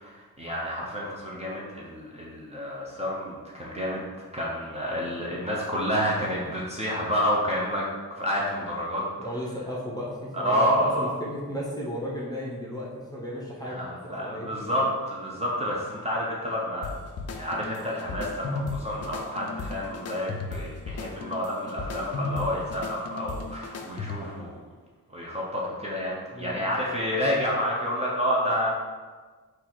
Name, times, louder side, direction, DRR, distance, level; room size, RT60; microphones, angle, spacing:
voice 1, 0.0-4.1 4.3-7.9 8.1-9.1 10.3-11.1 13.6-16.9 17.3-24.6 25.1-28.7, equal, 20° right, -5 dB, 0.7 m, -29 dB
voice 2, 9.2-14.5 26.3-26.6, equal, 10° left, -5 dB, 0.8 m, -34 dB
sound 1, 16.8-24.4, left 3 dB, 50° left, 0.4 m, -35 dB
4.3 x 2.5 x 4.2 m, 1.4 s
wide cardioid pair, 135°, 34 cm